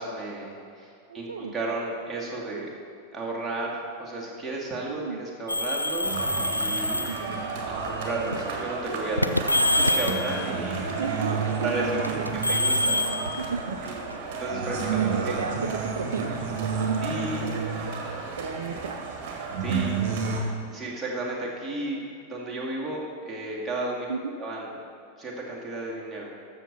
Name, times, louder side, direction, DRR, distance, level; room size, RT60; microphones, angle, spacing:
voice 1, 0.0-2.7 3.1-6.1 6.4-7.1 7.7-10.9 11.4-12.2 12.5-13.0 13.9-14.0 14.4-15.4 17.0-17.5 19.6-19.9 20.7-22.0 22.3-24.1 24.4-24.7 25.2-26.3, right 2 dB, 10° right, -5 dB, 2.2 m, -33 dB
voice 2, 1.1-1.5 4.9-5.2 7.1-7.5 10.9-11.9 12.3-12.6 13.2-14.0 14.9-18.0 18.4-19.1 24.1-24.3, right 5 dB, 65° right, 6 dB, 0.5 m, -34 dB
sound 1, 5.5-7.2 8.1-8.4 9.2-10.3 12.0-14.1, left 1 dB, 90° left, 0.4 m, -25 dB
sound 2, 6.0-20.4, right 5 dB, 45° right, 1.6 m, -31 dB
13.0 x 6.8 x 4.1 m, 2.4 s
figure-of-eight pair, 90°, 0 cm